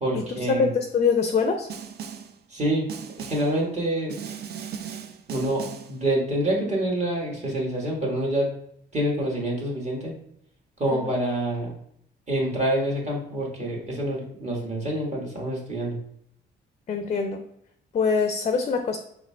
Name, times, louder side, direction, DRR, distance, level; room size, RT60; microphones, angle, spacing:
voice 1, 0.0-0.7 2.5-2.9 3.2-4.1 5.3-8.5 8.9-10.1 10.8-11.7 12.3-16.0, right 1 dB, 35° right, -3 dB, 1.4 m, -26 dB
voice 2, 0.6-1.7 10.9-11.1 16.9-17.4 17.9-19.0, left 5 dB, 35° left, 6 dB, 0.4 m, -24 dB
Snare drum, 1.7-2.4 2.9-3.6 4.1-6.0, right 7 dB, 55° right, 0.4 m, -37 dB
4.8 x 3.4 x 2.2 m, 0.72 s
cardioid pair, 90°, 20 cm